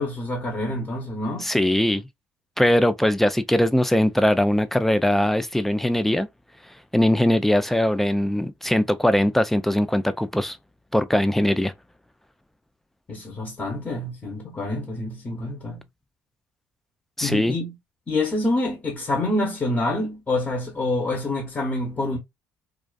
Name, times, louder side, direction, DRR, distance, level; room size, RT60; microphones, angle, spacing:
voice 1, 0.0-1.5 13.1-15.8 17.2-17.7 18.1-22.2, left 2 dB, 25° left, 0.9 m, -27 dB
voice 2, 1.4-2.0 2.6-6.3 6.9-10.6 10.9-11.7 17.2-17.5, left 1 dB, 5° left, 0.3 m, -21 dB
2.4 x 2.3 x 2.2 m
supercardioid pair, 90°, 6 cm